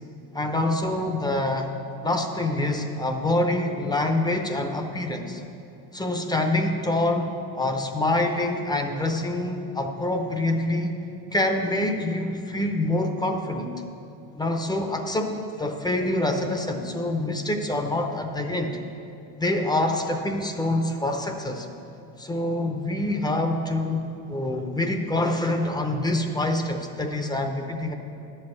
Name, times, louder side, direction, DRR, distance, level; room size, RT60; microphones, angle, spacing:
voice 1, 0.3-1.7 2.0-5.4 5.9-11.0 11.3-13.7 14.4-18.8 19.4-21.7 22.2-27.9, left 1 dB, 10° left, 5 dB, 0.7 m, -26 dB
11.0 x 5.6 x 7.9 m, 2.7 s
cardioid pair, 125°, 40 cm